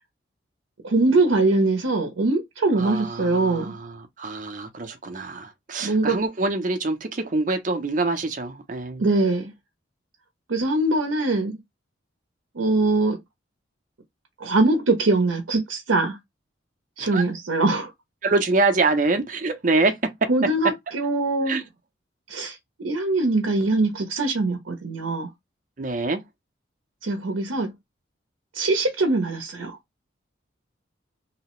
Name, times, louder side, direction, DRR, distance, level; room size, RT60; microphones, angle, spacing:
voice 1, 0.8-3.8 5.8-6.2 9.0-9.5 10.5-11.6 12.5-13.2 14.4-16.2 17.0-17.9 20.3-21.6 22.3-22.6 22.8-25.3 27.0-27.7 28.5-29.8, right 2 dB, 80° right, 0.6 m, -22 dB
voice 2, 2.7-9.0 17.0-17.2 18.2-20.0 20.6-20.7 21.5-21.6 25.8-26.2, right 3 dB, 40° right, 0.5 m, -25 dB
2.7 x 2.0 x 2.9 m
head